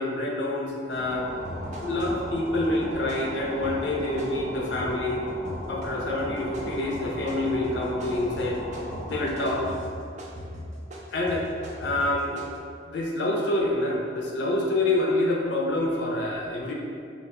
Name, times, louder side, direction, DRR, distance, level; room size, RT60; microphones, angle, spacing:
voice 1, 0.0-1.3 1.8-5.2 5.7-8.6 9.1-9.7 11.1-11.5 11.8-12.3 12.9-16.7, left 2 dB, 75° left, -1 dB, 0.4 m, -27 dB
sound 1, 0.8-9.7, equal, 80° right, 0.7 m, -38 dB
wax on wax off, 0.9-1.0 1.4-5.0 5.4-5.9 6.2-12.6, equal, 40° right, 0.3 m, -40 dB
2.4 x 2.2 x 3.4 m, 2.3 s
head